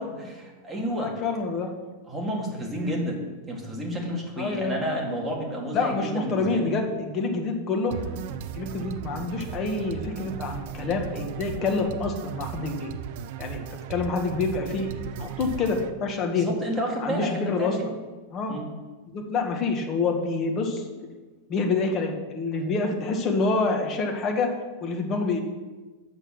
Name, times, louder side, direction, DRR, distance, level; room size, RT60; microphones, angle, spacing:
voice 1, 0.0-1.1 2.1-3.2 3.5-6.7 16.4-17.9 18.5-18.7, equal, 10° right, -1 dB, 1.7 m, -30 dB
voice 2, 0.8-1.7 4.4-4.8 5.7-7.9 8.5-12.9 13.4-16.5 17.0-17.8 18.3-18.6 19.1-20.8 21.5-24.5 24.8-25.4, left 3 dB, 25° left, 3 dB, 1.3 m, -27 dB
sound 1, 7.9-15.9, right 8 dB, 50° right, 0.6 m, -36 dB
8.1 x 6.6 x 6.3 m, 1.3 s
supercardioid pair, 165°, 0 cm